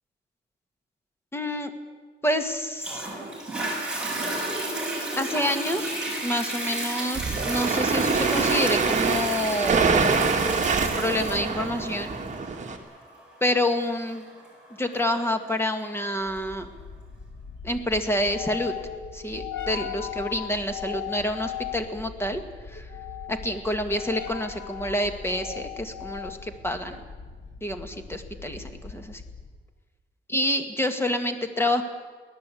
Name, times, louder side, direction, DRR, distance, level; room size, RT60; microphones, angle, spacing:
voice 1, 1.3-1.7 2.2-3.1 5.2-10.0 11.0-12.1 13.4-14.3 14.8-16.7 17.6-18.7 19.1-22.4 22.7-22.9 23.3-27.0 27.6-29.2 30.3-31.8, left 1 dB, 10° left, 6 dB, 1.9 m, -28 dB
Toilet flush, 2.8-15.8 16.4-16.5, right 1 dB, 5° right, 6.9 m, -32 dB
sound 1, 7.1-12.8, right 4 dB, 40° right, 2.1 m, -25 dB
sound 2, 16.3-29.6, left 8 dB, 90° left, 2.2 m, -38 dB
23.5 x 17.0 x 8.5 m, 1.4 s
wide cardioid pair, 160°, 19 cm